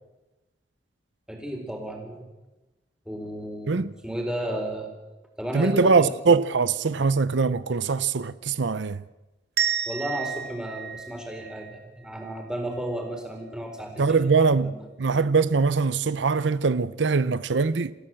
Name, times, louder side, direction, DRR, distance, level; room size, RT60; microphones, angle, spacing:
voice 1, 1.3-2.3 3.1-4.9 5.4-6.1 9.9-14.1 14.4-14.8, right 1 dB, 5° right, 4.3 m, -33 dB
voice 2, 5.5-9.0 14.0-17.9, right 4 dB, 85° right, 0.7 m, -22 dB
sound 1, 9.6-12.3, right 8 dB, 60° right, 2.7 m, -31 dB
27.0 x 15.5 x 7.7 m
head